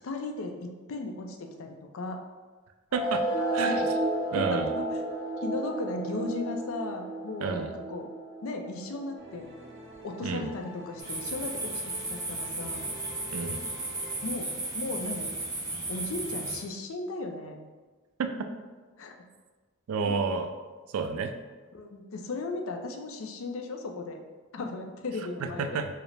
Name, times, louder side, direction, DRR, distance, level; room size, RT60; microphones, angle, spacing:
voice 1, 0.0-2.2 3.6-3.8 4.4-4.9 5.4-8.1 8.4-9.5 10.0-12.9 14.2-15.3 15.9-17.6 19.0-19.1 20.1-20.2 21.7-24.2 24.5-25.8, left 3 dB, 65° left, 4 dB, 0.4 m, -36 dB
sound 1, 2.9-9.9, right 1 dB, 85° left, 1.4 m, -32 dB
voice 2, 2.9-3.2 3.5-3.9 4.3-4.7 7.4-7.7 10.2-10.5 13.3-13.6 18.2-18.3 19.9-20.5 20.9-21.3 25.4-25.9, right 5 dB, 80° right, 7 dB, 0.4 m, -30 dB
sound 2, 9.2-14.3, equal, 55° right, 0.9 m, -48 dB
sound 3, 11.0-16.6, right 2 dB, 15° right, 0.8 m, -35 dB
4.7 x 2.0 x 3.3 m, 1.3 s
head